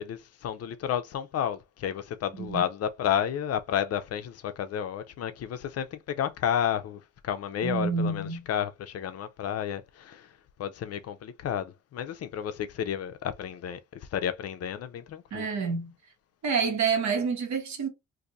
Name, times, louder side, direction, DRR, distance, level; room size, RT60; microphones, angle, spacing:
voice 1, 0.0-10.3 10.6-13.8 14.1-15.5, left 9 dB, 55° left, 0.5 m, -31 dB
voice 2, 7.6-8.4 15.3-15.9 16.4-17.9, right 5 dB, 65° right, 1.2 m, -28 dB
2.6 x 2.5 x 4.0 m
cardioid pair, 90°, 30 cm